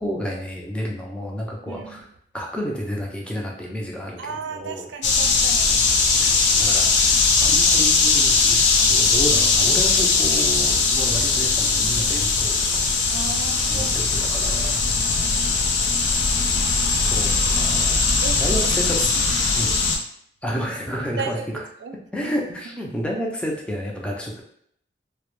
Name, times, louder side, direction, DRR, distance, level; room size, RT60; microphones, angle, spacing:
voice 1, 0.0-2.1 2.3-4.9 6.5-12.9 13.7-15.0 16.9-18.1 18.4-19.1 19.5-19.8 20.4-21.6 22.1-24.4, equal, 5° left, -2 dB, 0.3 m, -30 dB
voice 2, 1.7-2.0 4.2-5.8 8.8-9.1 13.1-13.9 15.0-15.5 16.9-17.2 17.6-17.7 18.2-18.4 18.7-18.8 19.2-19.3 21.2-22.3, right 5 dB, 85° right, 6 dB, 0.3 m, -35 dB
sound 1, 5.0-20.0, left 4 dB, 85° left, 0.4 m, -19 dB
2.1 x 2.0 x 3.0 m, 0.67 s
head